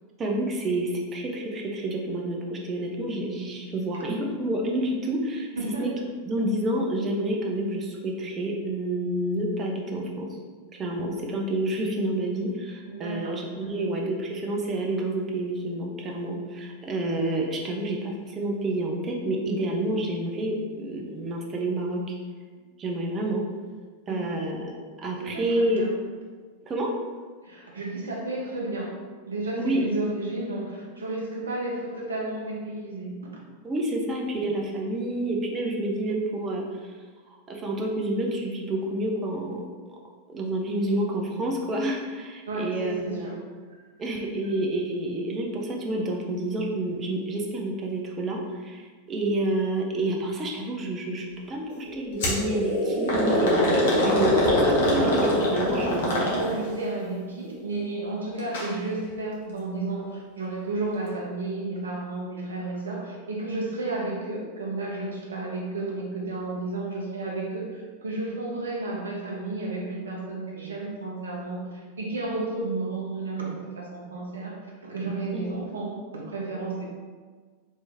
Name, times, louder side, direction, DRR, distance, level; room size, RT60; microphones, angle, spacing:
voice 1, 0.2-5.5 5.8-5.9 6.3-10.3 10.7-22.2 22.8-23.4 24.1-24.7 25.0-25.8 26.6-26.9 29.6-29.8 33.6-36.9 37.3-39.6 40.3-43.3 44.0-48.8 49.1-56.3 75.3-75.5, right 1 dB, 25° right, 0 dB, 0.6 m, -29 dB
voice 2, 5.5-6.0 12.8-13.9 24.1-24.4 25.2-25.9 27.4-28.9 29.3-33.4 42.4-43.4 44.4-44.5 55.4-76.8, right 2 dB, 70° right, -2 dB, 0.7 m, -32 dB
sound 1, 51.9-56.3, left 1 dB, ahead, 1.3 m, -25 dB
sound 2, 52.2-52.4 53.1-56.8 58.4-58.7 59.0-59.1 60.0-60.1, left 1 dB, 55° left, 0.9 m, -26 dB
3.0 x 2.7 x 3.4 m, 1.5 s
figure-of-eight pair, 90°, 0 cm